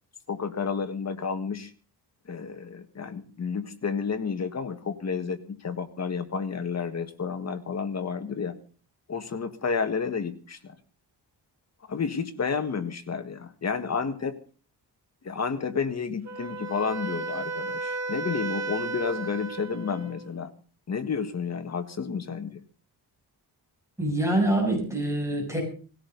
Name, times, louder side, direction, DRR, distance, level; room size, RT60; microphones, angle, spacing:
voice 1, 0.3-1.7 2.3-8.6 9.1-10.8 11.9-14.4 15.2-20.5 20.9-22.6, left 5 dB, 40° left, 8 dB, 1.7 m, -31 dB
Wind instrument woodwind instrument, 16.2-20.3, right 3 dB, 40° right, 1.6 m, -34 dB
voice 2, 24.0-25.6, right 1 dB, 5° right, 0 dB, 7.3 m, -25 dB
19.0 x 17.0 x 4.0 m, 0.39 s
wide cardioid pair, 175°, 41 cm